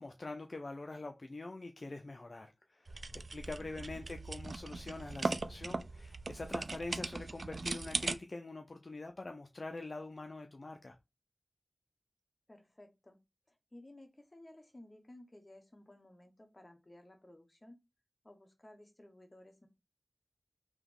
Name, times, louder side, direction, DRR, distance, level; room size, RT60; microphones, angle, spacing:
voice 1, 0.0-3.0 3.3-11.0, left 2 dB, 55° left, 0.4 m, -44 dB
sound 1, 2.9-8.2, right 3 dB, 70° right, 0.3 m, -39 dB
voice 2, 3.6-4.0 12.5-13.2 13.5-17.8 18.2-19.7, left 1 dB, 30° left, 1.0 m, -57 dB
3.5 x 2.9 x 3.6 m
cardioid pair, 45°, 0 cm